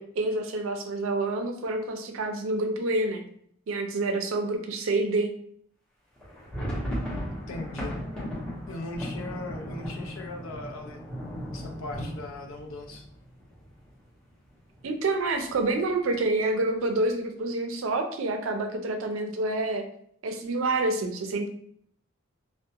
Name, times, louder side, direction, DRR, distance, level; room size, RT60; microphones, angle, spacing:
voice 1, 0.0-3.2 3.7-5.3 14.8-19.8 20.2-21.5, right 2 dB, 75° right, 5 dB, 0.4 m, -28 dB
sound 1, 6.2-13.9 14.2-14.3 14.6-14.8 15.3-15.8, equal, 5° left, 0.8 m, -36 dB
voice 2, 7.5-8.0 8.7-11.0 11.5-13.1, left 2 dB, 80° left, 4 dB, 0.5 m, -39 dB
2.3 x 2.1 x 2.7 m, 0.66 s
head